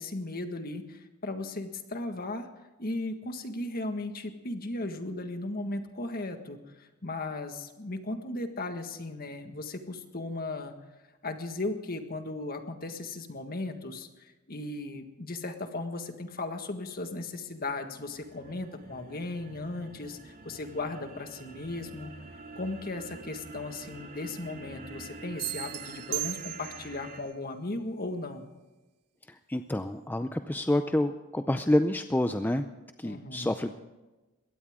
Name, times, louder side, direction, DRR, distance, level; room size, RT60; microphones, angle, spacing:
voice 1, 0.0-2.5 2.8-10.7 11.2-22.1 22.5-28.5 33.0-33.6, left 2 dB, 40° left, 6 dB, 1.7 m, -36 dB
sound 1, 17.3-27.2, right 3 dB, 40° right, 2.5 m, -47 dB
sound 2, 25.4-27.0, right 20 dB, 85° right, 0.5 m, -36 dB
voice 2, 29.5-32.6 33.0-33.7, left 1 dB, 10° left, 8 dB, 0.5 m, -28 dB
22.0 x 17.5 x 3.7 m, 1.1 s
head